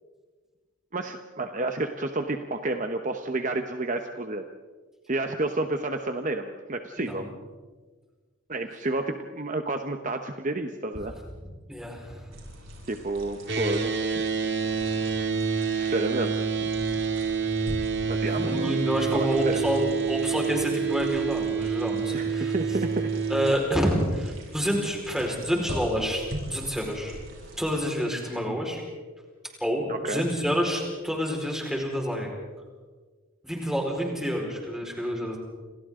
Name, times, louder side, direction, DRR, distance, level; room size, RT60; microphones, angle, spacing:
voice 1, 0.9-4.5 5.1-7.3 8.5-11.1 12.9-13.9 15.7-16.4 18.0-18.8 19.1-19.6 22.1-23.1 29.9-30.2, right 2 dB, 40° right, 6 dB, 1.1 m, -30 dB
voice 2, 7.0-7.3 11.7-12.3 18.2-22.5 23.3-27.1 27.6-28.8 29.6-32.3 33.4-35.4, equal, 5° right, 0 dB, 4.7 m, -28 dB
sound 1, 12.3-27.7, equal, 75° right, 7.5 m, -43 dB
sound 2, 13.5-23.5, right 5 dB, 55° right, 2.0 m, -28 dB
30.0 x 26.5 x 3.8 m, 1.4 s
head